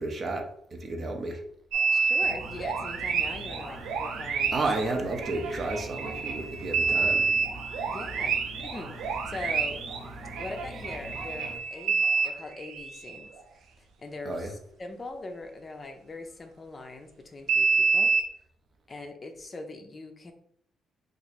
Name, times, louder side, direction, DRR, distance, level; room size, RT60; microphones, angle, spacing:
voice 1, 0.0-1.4 4.5-7.3 14.3-14.5, right 2 dB, 45° right, 3 dB, 0.7 m, -32 dB
sound 1, 1.7-13.2 17.5-18.3, right 5 dB, 80° right, 0.5 m, -28 dB
voice 2, 1.9-4.8 7.9-8.9 9.3-9.8 10.4-13.3 13.5-13.6 14.0-18.1 18.9-20.3, left 2 dB, 30° left, 5 dB, 0.5 m, -41 dB
sound 2, 2.2-11.6, equal, 15° right, 0.9 m, -44 dB
2.8 x 2.6 x 4.2 m, 0.70 s
cardioid pair, 90°, 0 cm